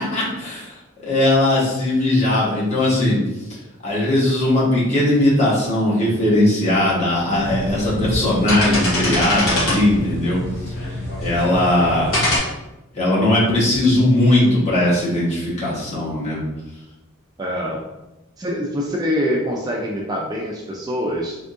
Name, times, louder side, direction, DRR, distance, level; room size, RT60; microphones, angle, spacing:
voice 1, 0.0-3.2 3.8-10.4 11.2-12.2 12.9-16.4, left 1 dB, 30° left, -7 dB, 1.1 m, -19 dB
sound 1, 7.4-12.4, left 1 dB, 50° left, 1.5 m, -30 dB
sound 2, 7.8-7.9 8.3-10.0 10.7-11.5 12.1-12.4, left 1 dB, 70° left, 1.4 m, -23 dB
voice 2, 17.4-17.8 18.4-21.4, equal, 20° right, -2 dB, 0.3 m, -24 dB
3.6 x 2.6 x 2.5 m, 0.97 s
head